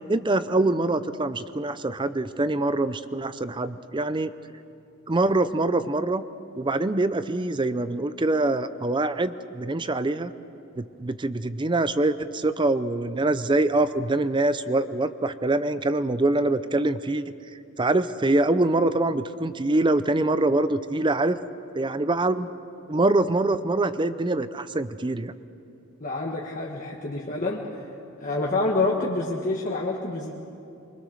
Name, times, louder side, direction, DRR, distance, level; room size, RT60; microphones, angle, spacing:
voice 1, 0.1-4.3 5.1-6.3 6.5-10.3 10.8-17.2 17.8-21.4 21.7-22.5 22.9-25.3, right 2 dB, 20° right, 13 dB, 0.5 m, -24 dB
voice 2, 26.0-27.8 28.2-30.3, left 2 dB, 35° left, -2 dB, 1.5 m, -27 dB
24.5 x 23.5 x 6.5 m, 2.7 s
head